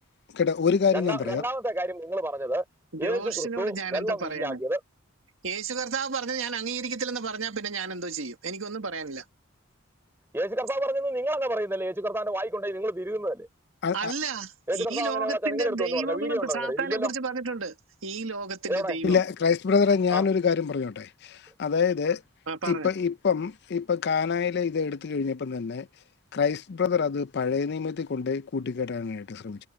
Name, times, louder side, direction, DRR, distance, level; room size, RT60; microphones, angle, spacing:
voice 1, 0.3-1.4 13.8-14.1 19.0-22.2 22.7-25.9 26.3-29.6, left 6 dB, 50° left, 0.5 m, -26 dB
voice 2, 0.9-2.6 3.0-4.8 10.3-13.5 14.7-17.1 18.7-19.0 20.1-20.2, right 1 dB, 10° right, 4.2 m, -29 dB
voice 3, 2.9-4.6 5.4-9.2 13.9-17.8 18.0-19.2 22.5-22.9, right 4 dB, 65° right, 1.7 m, -32 dB
head